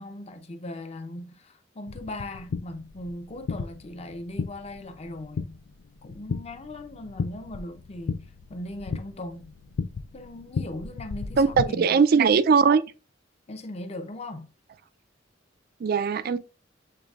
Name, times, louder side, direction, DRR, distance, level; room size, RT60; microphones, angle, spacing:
voice 1, 0.0-5.6 6.0-9.5 10.1-12.0 13.5-14.5, left 1 dB, 35° left, 0.7 m, -39 dB
sound 1, 1.9-11.7, left 5 dB, 80° left, 0.4 m, -35 dB
voice 2, 11.4-12.8 15.8-16.4, right 5 dB, 55° right, 0.3 m, -20 dB
6.8 x 3.3 x 2.4 m
head